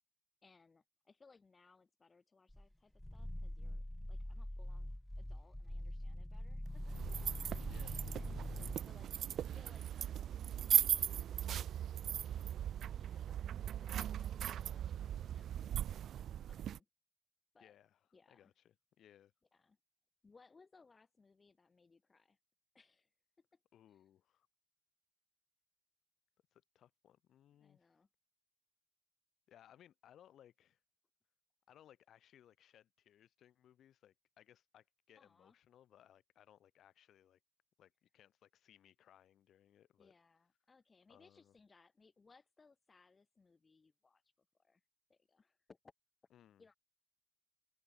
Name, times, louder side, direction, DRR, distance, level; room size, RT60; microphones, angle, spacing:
voice 1, 0.4-3.8 4.1-7.9 8.8-13.5 13.8-15.6 16.5-16.9 17.5-17.8 18.1-18.5 19.5-19.8 20.2-22.4 22.7-23.1 23.4-23.6 23.9-24.0 27.6-28.1 35.2-35.5 40.0-44.2 44.6-44.8 45.1-45.9 46.6-46.7, left 4 dB, 30° left, 3.3 m, -67 dB
Growling, 2.5-8.8, left 1 dB, 5° left, 0.4 m, -44 dB
sound 1, 6.7-16.8, right 10 dB, 70° right, 0.3 m, -38 dB
voice 2, 7.0-8.9 17.6-18.0 18.3-19.3 23.7-24.5 26.5-27.9 29.5-30.8 31.7-37.4 37.8-40.1 41.1-41.5 46.3-46.6, left 10 dB, 70° left, 5.9 m, -65 dB
open air
cardioid pair, 90°, 0 cm